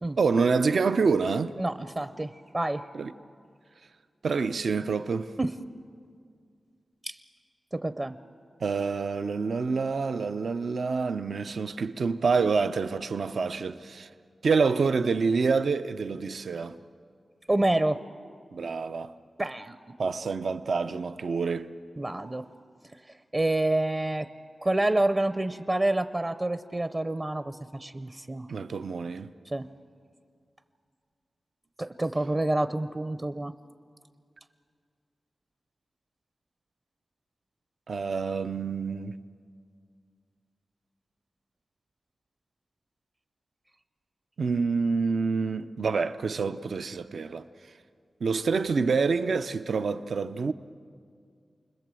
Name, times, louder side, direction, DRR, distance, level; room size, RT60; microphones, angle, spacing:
voice 1, 0.2-1.5 2.9-3.1 4.2-5.3 8.6-14.1 14.4-16.8 18.5-19.1 20.0-21.7 28.5-29.3 37.9-39.2 44.4-47.5 48.2-50.5, right 4 dB, 75° right, 0.6 m, -27 dB
voice 2, 1.6-2.9 5.4-5.5 7.0-7.2 7.7-8.2 17.5-18.0 19.4-19.8 22.0-22.4 23.3-24.3 24.6-28.5 29.5-29.7 31.8-33.5, right 1 dB, 25° right, 0.7 m, -28 dB
29.0 x 21.0 x 7.7 m
wide cardioid pair, 95°, 0 cm